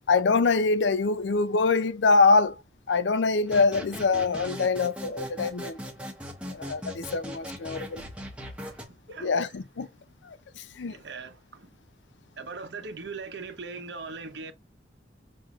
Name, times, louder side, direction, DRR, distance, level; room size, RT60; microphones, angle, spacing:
voice 1, 0.1-2.6 2.9-5.8 6.5-8.0 9.2-9.9 10.3-11.0, left 4 dB, 90° left, 0.5 m, -24 dB
sound 1, 3.5-8.9, equal, 5° right, 0.9 m, -39 dB
voice 2, 10.9-11.7 12.4-14.5, right 4 dB, 80° right, 0.9 m, -40 dB
6.1 x 2.6 x 2.4 m
head